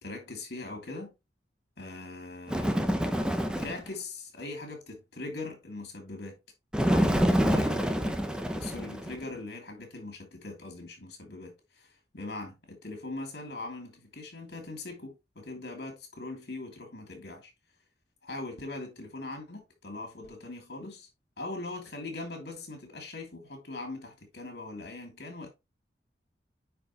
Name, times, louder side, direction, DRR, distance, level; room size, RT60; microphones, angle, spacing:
voice 1, 0.0-1.1 1.8-3.1 3.6-6.4 6.9-17.5 18.2-21.1 21.4-25.5, left 2 dB, 65° left, 2.8 m, -41 dB
Bird, 2.5-3.9 6.7-9.2, equal, 5° right, 0.8 m, -27 dB
9.7 x 4.7 x 3.1 m
head